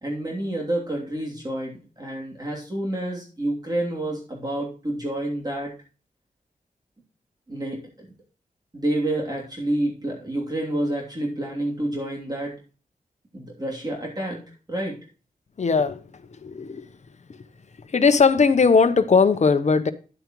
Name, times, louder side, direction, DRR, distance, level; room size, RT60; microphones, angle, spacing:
voice 1, 0.0-5.7 7.5-8.1 8.7-12.5 13.3-14.4 14.7-14.9, right 1 dB, 25° right, 3.0 m, -28 dB
voice 2, 15.6-16.9 17.9-19.9, left 5 dB, 50° left, 0.9 m, -19 dB
10.5 x 8.7 x 3.1 m
wide cardioid pair, 105°, 15 cm